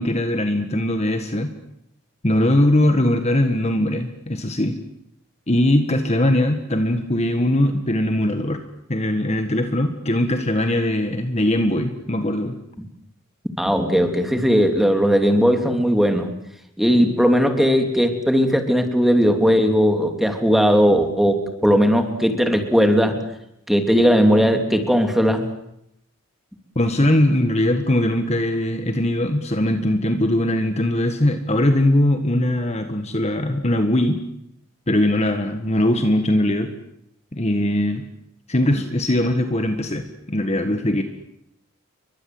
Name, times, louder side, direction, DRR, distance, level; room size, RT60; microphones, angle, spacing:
voice 1, 0.0-1.5 2.2-4.8 5.5-8.6 8.9-12.6 26.7-34.2 34.9-36.7 37.3-38.0 38.5-41.0, left 1 dB, 30° left, 7 dB, 1.6 m, -20 dB
voice 2, 13.6-16.3 16.8-23.2 23.7-25.4, equal, ahead, 5 dB, 3.0 m, -18 dB
29.5 x 23.5 x 7.9 m, 0.79 s
head